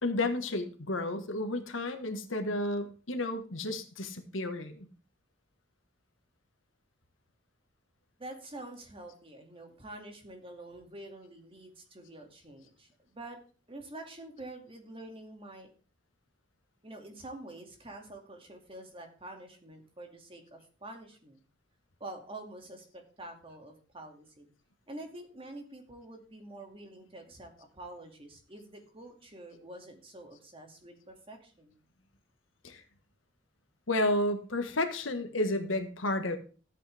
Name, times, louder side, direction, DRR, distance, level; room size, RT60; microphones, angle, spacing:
voice 1, 0.0-4.9 32.6-32.8 33.9-36.4, left 1 dB, 75° left, 7 dB, 1.6 m, -31 dB
voice 2, 8.2-13.4 13.7-15.7 16.8-21.4 22.0-24.5 24.9-31.8, right 1 dB, 30° right, 3 dB, 2.4 m, -47 dB
13.5 x 8.7 x 3.5 m, 0.38 s
head